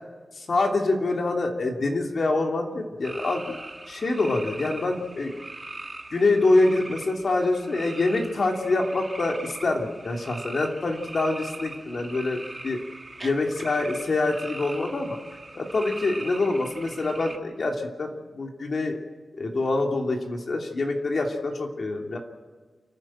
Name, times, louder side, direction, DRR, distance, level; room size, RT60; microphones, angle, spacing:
voice 1, 0.3-3.6 3.9-5.3 6.1-12.8 13.2-15.2 15.5-19.0 19.4-22.2, left 2 dB, 60° left, 1 dB, 2.9 m, -25 dB
sound 1, 3.0-17.4, right 2 dB, 25° right, 1.9 m, -41 dB
29.5 x 10.5 x 8.9 m, 1.4 s
wide cardioid pair, 95°, 0 cm